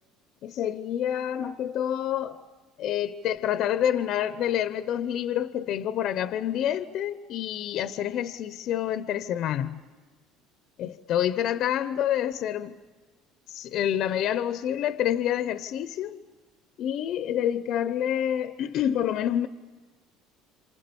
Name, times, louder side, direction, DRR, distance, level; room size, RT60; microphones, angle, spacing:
voice 1, 0.4-2.4 2.8-9.8 10.8-12.8 13.5-16.2 16.8-19.5, left 10 dB, 55° left, 0.9 m, -28 dB
28.5 x 27.0 x 7.1 m
cardioid pair, 115°, 0 cm